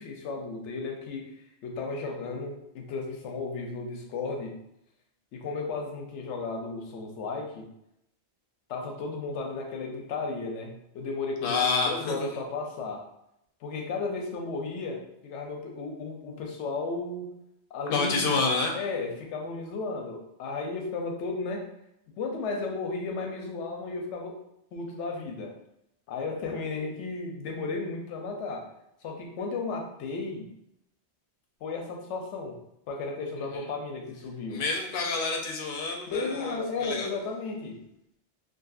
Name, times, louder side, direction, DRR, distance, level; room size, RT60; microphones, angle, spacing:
voice 1, 0.0-1.3 1.6-4.6 5.3-7.6 8.7-13.0 13.6-17.3 17.7-18.3 18.7-21.7 22.2-24.3 24.7-25.5 26.1-28.7 29.0-30.5 31.6-32.5 32.9-34.6 36.1-37.8, left 3 dB, 90° left, 2 dB, 0.9 m, -34 dB
voice 2, 11.4-12.3 17.9-18.7 33.4-33.7 34.5-37.1, left 4 dB, 60° left, 1 dB, 0.6 m, -28 dB
2.6 x 2.5 x 2.3 m, 0.80 s
omnidirectional pair, 1.2 m